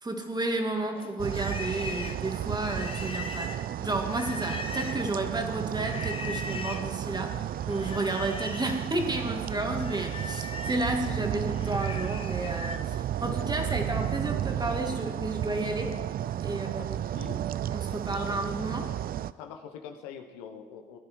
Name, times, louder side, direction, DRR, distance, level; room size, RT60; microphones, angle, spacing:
voice 1, 0.0-3.5 3.8-16.0 16.4-17.0 17.7-18.9, right 2 dB, 20° right, 3 dB, 2.3 m, -32 dB
Livestock farm animals working animals, 1.0-5.2 5.8-6.9 7.7-8.8 9.2-12.9, left 3 dB, 25° left, 1.3 m, -40 dB
sound 1, 1.2-19.3, right 11 dB, 45° right, 0.5 m, -33 dB
voice 2, 16.5-17.4 19.4-21.0, left 7 dB, 85° left, 6 dB, 1.1 m, -44 dB
16.0 x 10.0 x 4.8 m, 1.3 s
hypercardioid pair, 60°, 20 cm